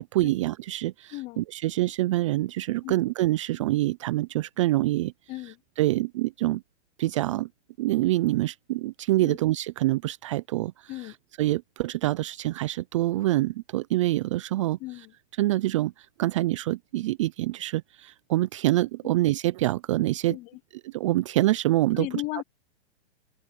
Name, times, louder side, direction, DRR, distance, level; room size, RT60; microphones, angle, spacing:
voice 1, 0.0-5.1 5.8-6.6 7.0-7.5 7.8-10.9 11.4-14.8 15.4-20.4 20.8-22.2, right 16 dB, 30° right, 0.4 m, -26 dB
voice 2, 1.1-1.4 2.8-3.0 5.3-5.6 9.2-9.4 10.9-11.2 14.8-15.1 19.0-19.1 20.3-20.6 21.9-22.4, left 20 dB, 20° left, 0.6 m, -36 dB
open air
hypercardioid pair, 145°, 34 cm